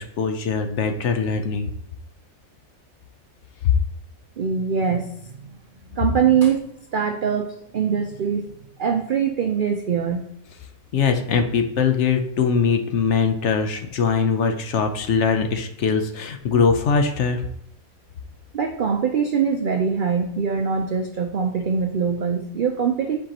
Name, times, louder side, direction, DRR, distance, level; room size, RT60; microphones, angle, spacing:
voice 1, 0.2-1.7 3.6-3.7 10.9-17.4, left 6 dB, 60° left, 6 dB, 0.9 m, -21 dB
voice 2, 4.4-5.3 5.9-8.5 8.8-10.3 18.5-23.2, right 6 dB, 65° right, 4 dB, 0.5 m, -23 dB
7.4 x 4.7 x 2.9 m, 0.75 s
omnidirectional pair, 1.5 m